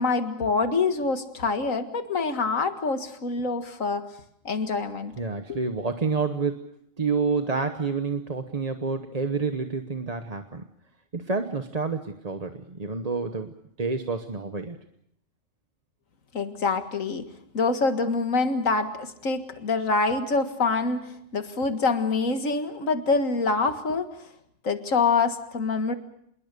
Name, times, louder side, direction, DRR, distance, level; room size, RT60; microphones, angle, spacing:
voice 1, 0.0-4.1 4.4-5.1 5.5-5.6 16.3-17.3 17.5-24.1 24.6-25.9, left 4 dB, 85° left, 8 dB, 2.2 m, -25 dB
voice 2, 5.2-6.7 7.0-10.7 11.1-14.8, right 4 dB, 30° right, 6 dB, 1.1 m, -29 dB
26.5 x 21.5 x 6.8 m, 0.71 s
omnidirectional pair, 1.3 m